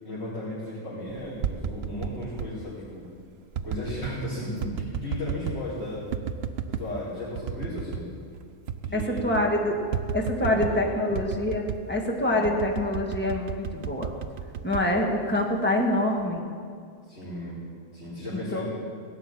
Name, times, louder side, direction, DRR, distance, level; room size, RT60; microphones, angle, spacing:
voice 1, 0.0-3.0 3.6-6.0 6.7-8.0 8.8-9.2 10.3-10.6 10.9-11.0 12.3-12.5 17.1-17.5 17.9-18.7, left 1 dB, 60° left, -12 dB, 5.0 m, -35 dB
sound 1, 1.2-2.5 3.5-4.2 4.6-5.7 6.1-6.9 7.4-8.1 8.4-8.5 8.7-9.5 9.9-10.8 11.2-11.9 12.4-15.5 16.0-16.4, right 7 dB, 60° right, 0.8 m, -33 dB
voice 2, 8.9-9.8 10.1-14.1 14.6-16.4 18.3-18.7, left 1 dB, 10° left, 0 dB, 1.6 m, -26 dB
17.0 x 7.0 x 9.0 m, 2.1 s
omnidirectional pair, 1.3 m